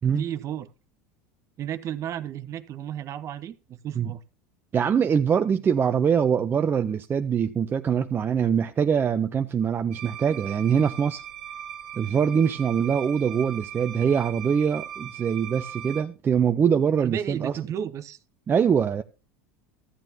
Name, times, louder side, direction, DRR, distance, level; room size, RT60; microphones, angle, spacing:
voice 1, 0.2-0.7 1.6-4.2 17.0-18.2, right 10 dB, 45° right, 1.0 m, -33 dB
voice 2, 4.7-11.2 12.0-17.5 18.5-19.0, right 7 dB, 30° right, 0.6 m, -23 dB
sound 1, 9.9-16.0, right 10 dB, 70° right, 1.6 m, -39 dB
14.0 x 9.0 x 2.8 m
hypercardioid pair, 90°, 7 cm